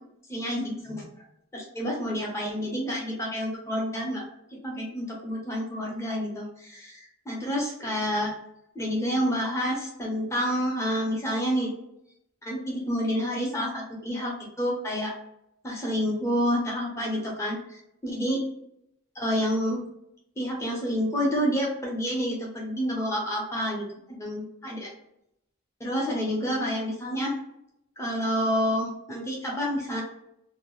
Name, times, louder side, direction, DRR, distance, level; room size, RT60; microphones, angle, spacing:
voice 1, 0.3-1.1 1.5-4.3 4.6-8.3 8.7-11.7 12.4-14.3 14.6-15.1 15.6-18.4 19.1-19.8 20.4-24.9 25.8-27.3 28.0-30.0, equal, 15° left, -3 dB, 0.8 m, -29 dB
2.9 x 2.3 x 3.1 m, 0.78 s
head